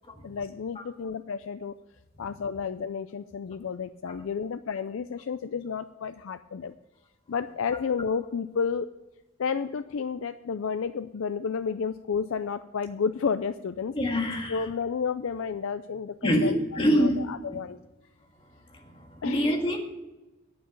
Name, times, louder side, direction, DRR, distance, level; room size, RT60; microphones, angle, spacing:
voice 1, 0.2-1.7 2.2-6.7 7.3-8.9 9.4-13.9 14.5-16.6 17.0-17.8 19.2-19.5, left 6 dB, 70° left, 0.4 m, -31 dB
voice 2, 13.9-14.6 16.2-17.6 18.7-19.8, equal, 25° left, 1.8 m, -26 dB
10.0 x 8.7 x 7.0 m
head